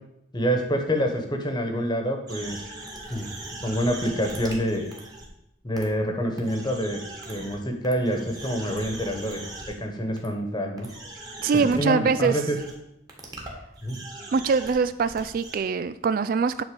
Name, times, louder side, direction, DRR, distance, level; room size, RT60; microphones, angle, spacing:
voice 1, 0.3-2.6 3.1-3.3 3.6-4.9 5.6-7.0 7.3-9.4 9.7-10.9 11.7-12.6 13.8-14.0, equal, 20° left, 4 dB, 1.3 m, -27 dB
sound 1, 2.3-5.3 5.7-5.8 6.4-7.5 7.8-9.7 10.2-10.3 10.8-11.7 12.2-12.3 12.5-12.7 13.1-15.6, right 2 dB, 20° right, 1.8 m, -40 dB
voice 2, 11.4-12.4 14.3-16.6, right 5 dB, 50° right, 14 dB, 0.3 m, -23 dB
10.0 x 4.1 x 7.0 m, 0.83 s
head